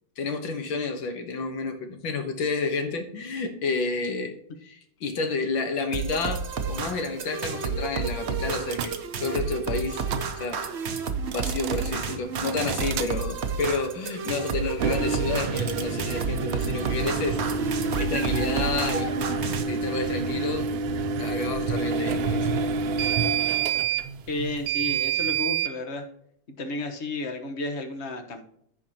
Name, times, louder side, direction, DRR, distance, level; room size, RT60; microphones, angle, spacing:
voice 1, 0.2-4.4 4.6-10.6 11.3-17.7 18.0-19.2 19.7-20.7 21.2-22.5, left 3 dB, 80° left, 6 dB, 2.0 m, -30 dB
sound 1, 5.9-19.6, right 5 dB, 55° right, 0.8 m, -31 dB
sound 2, 8.7-8.9 9.9-10.3 11.2-11.9 12.4-13.1 14.7-25.7, right 5 dB, 90° right, 1.5 m, -28 dB
voice 2, 24.3-26.1 26.6-28.5, left 2 dB, 40° left, 5 dB, 1.2 m, -32 dB
15.5 x 5.2 x 2.9 m, 0.72 s
omnidirectional pair, 2.1 m